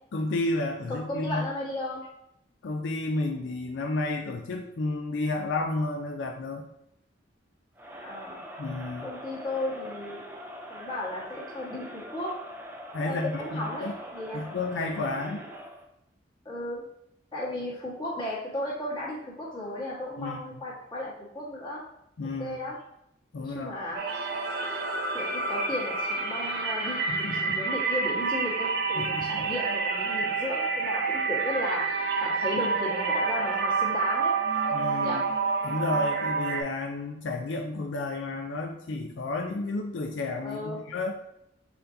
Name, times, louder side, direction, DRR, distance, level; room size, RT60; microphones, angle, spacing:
voice 1, 0.1-1.4 2.6-6.6 8.6-9.1 12.9-13.9 14.3-15.5 20.2-20.6 22.2-22.6 23.3-23.7 27.1-27.6 29.0-29.5 34.7-35.2 35.6-41.1, left 2 dB, 80° left, 2 dB, 0.4 m, -31 dB
voice 2, 0.9-2.0 8.0-8.4 9.0-10.2 10.7-12.3 13.0-14.4 16.4-16.8 17.3-21.8 22.4-22.8 23.4-24.0 25.1-31.9 32.2-34.3 35.0-35.2 40.4-40.8, left 1 dB, 25° left, -7 dB, 1.4 m, -35 dB
Crowd, 7.8-15.9, equal, 10° right, 0.4 m, -43 dB
sound 1, 23.9-36.6, right 4 dB, 60° right, 0.6 m, -28 dB
4.2 x 4.1 x 2.6 m, 0.80 s
head